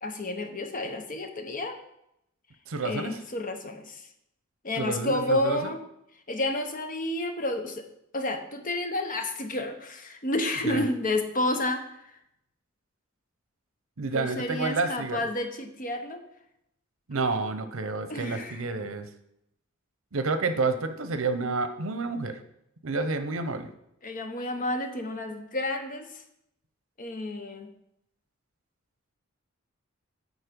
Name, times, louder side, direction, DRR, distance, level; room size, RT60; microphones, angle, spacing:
voice 1, 0.0-1.8 2.8-4.0 4.6-5.8 6.3-7.9 8.1-11.8 14.1-16.2 18.1-18.6 24.0-26.1 27.0-27.7, left 1 dB, 40° left, 6 dB, 0.9 m, -30 dB
voice 2, 2.7-3.2 4.8-5.7 10.7-10.8 14.0-15.2 17.1-19.1 20.1-22.4 22.8-23.7, right 3 dB, 85° right, 9 dB, 0.8 m, -29 dB
9.2 x 4.2 x 5.2 m, 0.80 s
head